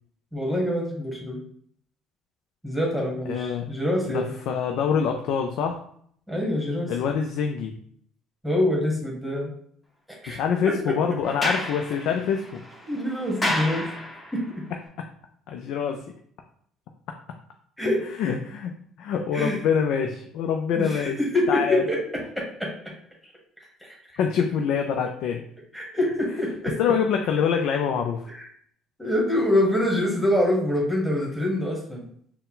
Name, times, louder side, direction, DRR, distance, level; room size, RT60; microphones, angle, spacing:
voice 1, 0.3-1.4 2.6-4.3 6.3-6.9 8.4-9.5 10.2-10.4 10.6-10.7 12.9-13.8 14.3-14.4 17.8-18.0 19.3-19.6 20.7-22.0 22.3-22.7 23.2-23.3 23.8-24.0 25.7-26.8 28.3-28.5 29.0-32.0, left 1 dB, ahead, -2 dB, 1.3 m, -25 dB
voice 2, 3.3-3.7 4.1-5.8 6.9-7.7 10.3-12.6 15.5-16.1 18.2-21.2 21.5-21.8 24.2-25.5 26.8-28.3, left 7 dB, 70° left, 4 dB, 0.4 m, -25 dB
Sliding door, 11.2-14.5, left 1 dB, 20° left, 1.2 m, -31 dB
4.2 x 2.1 x 3.8 m, 0.63 s
supercardioid pair, 75°, 0 cm